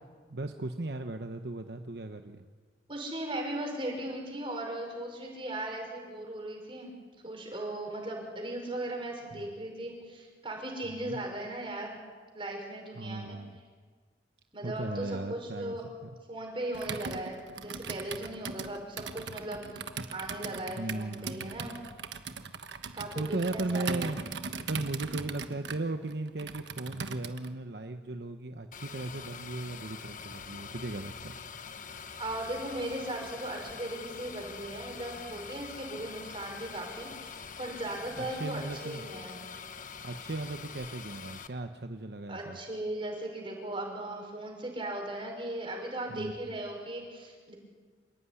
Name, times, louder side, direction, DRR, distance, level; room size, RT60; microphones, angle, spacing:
voice 1, 0.3-2.4 9.3-9.4 10.8-11.2 13.0-13.6 14.6-16.1 20.8-21.5 23.1-31.3 38.2-39.0 40.0-42.6 46.1-46.5, right 2 dB, 65° right, 7 dB, 1.0 m, -37 dB
voice 2, 2.9-6.9 7.2-12.0 12.3-13.4 14.5-15.8 16.3-19.8 20.1-21.8 22.9-24.1 32.2-39.4 42.3-47.5, right 1 dB, 30° right, 1 dB, 5.8 m, -38 dB
Computer keyboard, 16.7-27.5, right 5 dB, 90° right, 1.3 m, -40 dB
sound 1, 28.7-41.5, left 6 dB, 50° left, 1.2 m, -44 dB
27.5 x 15.5 x 9.9 m, 1.5 s
head